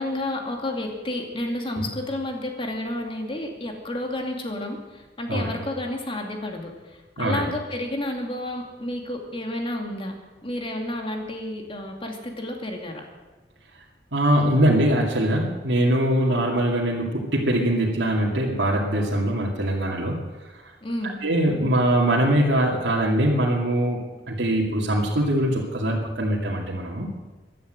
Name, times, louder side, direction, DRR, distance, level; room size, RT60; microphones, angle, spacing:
voice 1, 0.0-10.1 10.4-13.0 20.8-21.2, left 1 dB, 30° left, 2 dB, 2.5 m, -31 dB
voice 2, 14.1-20.2 21.2-24.0 24.3-27.1, right 1 dB, 75° right, -4 dB, 2.3 m, -22 dB
15.5 x 11.5 x 7.7 m, 1.2 s
head